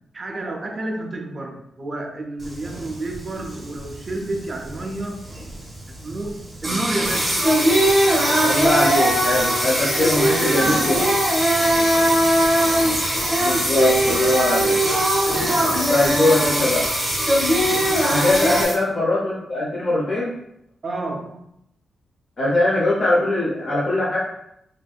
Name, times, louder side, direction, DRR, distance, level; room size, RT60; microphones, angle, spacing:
voice 1, 0.1-5.2 5.9-7.4 10.1-11.2 15.3-15.8 17.7-18.3 20.8-21.4, right 2 dB, 30° right, 1 dB, 0.5 m, -30 dB
Singing, 2.4-18.7, right 1 dB, 10° right, 0.9 m, -21 dB
sound 1, 7.0-18.7, left 1 dB, 85° left, 0.9 m, -29 dB
voice 2, 8.4-11.0 13.4-14.8 15.9-16.9 18.1-20.3 22.4-24.2, left 2 dB, 35° left, -6 dB, 0.7 m, -21 dB
3.4 x 2.6 x 2.3 m, 0.76 s
wide cardioid pair, 165°, 0 cm